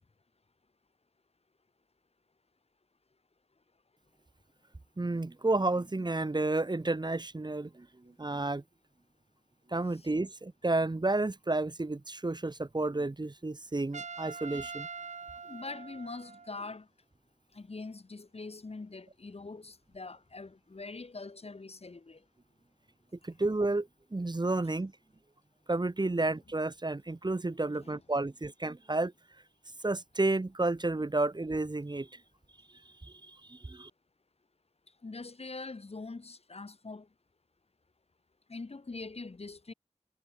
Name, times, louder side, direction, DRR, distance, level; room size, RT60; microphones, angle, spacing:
voice 1, 5.0-7.9 8.2-8.6 9.7-14.9 23.2-24.9 25.7-29.1 29.8-32.1 33.0-33.9, right 2 dB, 35° right, 1.1 m, -31 dB
Trumpet, 13.9-16.6, right 5 dB, 70° right, 0.7 m, -43 dB
voice 2, 15.4-16.9 17.5-22.2 27.8-28.0 35.0-37.1 38.5-39.7, left 3 dB, 55° left, 1.6 m, -43 dB
cardioid pair, 40°, 13 cm